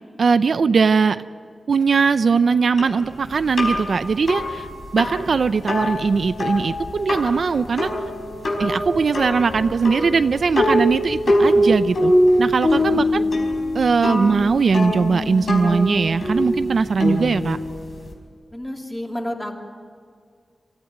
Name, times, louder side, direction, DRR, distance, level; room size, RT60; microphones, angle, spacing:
voice 1, 0.2-1.2 1.7-4.7 4.9-7.9 8.6-12.1 12.4-13.2 13.7-17.6, right 5 dB, 70° right, 12 dB, 0.6 m, -20 dB
sound 1, 2.8-18.1, left 1 dB, 70° left, 4.8 m, -23 dB
voice 2, 12.8-13.4 18.5-19.6, left 1 dB, 15° left, 1 dB, 2.9 m, -31 dB
26.5 x 14.5 x 9.0 m, 2.2 s
wide cardioid pair, 120°, 0 cm